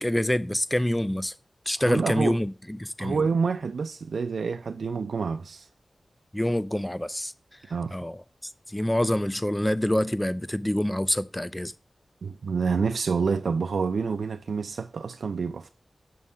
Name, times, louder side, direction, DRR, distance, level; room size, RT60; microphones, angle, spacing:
voice 1, 0.0-1.3 1.7-3.3 6.3-7.3 7.9-11.7, left 1 dB, 10° left, 0.3 m, -26 dB
voice 2, 1.8-2.4 3.0-5.7 7.7-7.9 12.2-15.7, right 5 dB, 85° right, 0.3 m, -28 dB
6.1 x 3.7 x 5.5 m
wide cardioid pair, 100°, 0 cm